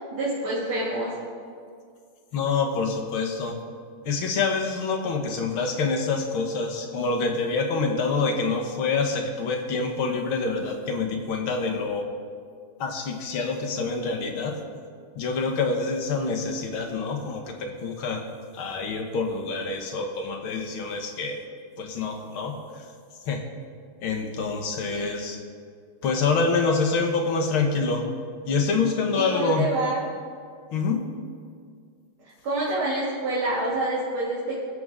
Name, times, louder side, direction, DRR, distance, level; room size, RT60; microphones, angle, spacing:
voice 1, 0.1-1.1 24.8-25.3 29.1-30.0 32.4-34.6, right 2 dB, 90° right, -10 dB, 3.7 m, -27 dB
voice 2, 2.3-3.6 4.1-12.1 12.8-14.6 15.2-18.2 18.5-21.4 21.8-22.6 23.3-23.4 24.0-25.4 26.0-28.1 28.5-29.8 30.7-31.1, left 4 dB, 80° left, 3 dB, 2.2 m, -26 dB
23.5 x 7.9 x 3.7 m, 2.1 s
omnidirectional pair, 2.3 m